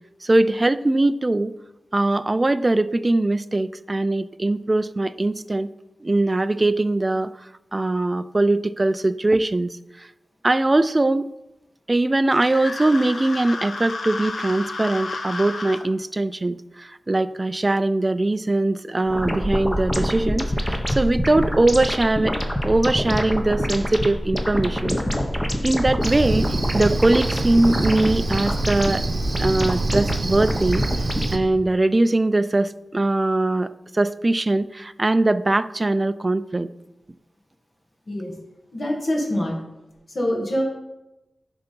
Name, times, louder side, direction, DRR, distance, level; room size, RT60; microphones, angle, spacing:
voice 1, 0.2-1.5 1.9-5.7 6.0-7.3 7.7-10.1 10.4-11.3 11.9-22.4 22.6-25.0 25.6-29.0 29.4-36.7, right 2 dB, 30° right, 14 dB, 0.3 m, -21 dB
sound 1, 12.3-15.8, left 3 dB, 70° left, 0.8 m, -32 dB
sound 2, 19.1-31.5, equal, 10° left, 1.0 m, -26 dB
Cricket, 26.0-31.4, right 2 dB, 55° right, 0.8 m, -27 dB
voice 2, 38.1-38.4 38.7-39.6 40.1-40.6, equal, 50° left, -1 dB, 2.2 m, -25 dB
10.5 x 4.0 x 5.2 m, 0.97 s
wide cardioid pair, 95°, 0 cm